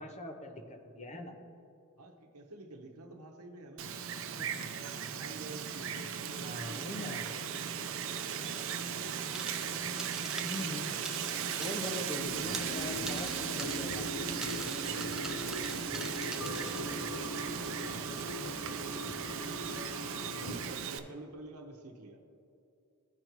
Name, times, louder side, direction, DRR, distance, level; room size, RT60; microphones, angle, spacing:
voice 1, 0.0-1.4 4.4-4.9 6.4-7.3 10.4-10.9 11.6-14.0 14.4-14.6 20.3-20.5, left 1 dB, 30° left, 4 dB, 0.8 m, -42 dB
voice 2, 2.0-3.9 4.9-8.1 10.8-11.3 13.5-13.9 14.8-18.3 19.7-20.1 20.3-22.2, right 2 dB, 80° right, 3 dB, 1.0 m, -50 dB
Wind, 3.8-21.0, right 7 dB, 60° right, 0.5 m, -37 dB
sound 1, 9.3-9.7 10.0-12.1 12.4-16.8, right 2 dB, 5° right, 0.5 m, -44 dB
sound 2, 12.2-20.6, left 1 dB, 65° left, 0.9 m, -41 dB
15.0 x 5.2 x 3.1 m, 2.7 s
head